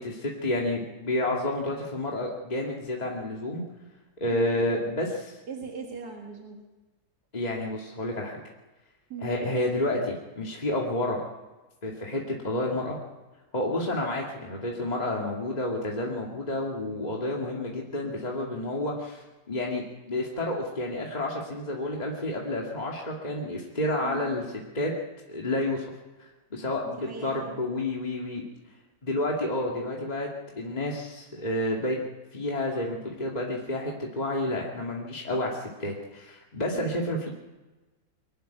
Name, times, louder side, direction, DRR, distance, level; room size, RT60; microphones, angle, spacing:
voice 1, 0.0-3.6 4.2-5.4 7.3-8.4 9.2-11.2 11.8-13.0 13.5-24.5 24.7-25.0 25.3-25.8 26.5-28.4 29.0-30.3 30.6-32.0 32.3-37.3, left 1 dB, 25° left, -2 dB, 2.4 m, -30 dB
voice 2, 5.5-6.6 9.1-9.3 24.0-24.3 26.9-27.5 36.7-37.0, right 5 dB, 85° right, 1 dB, 2.3 m, -40 dB
23.5 x 12.0 x 9.2 m, 1.2 s
omnidirectional pair, 1.7 m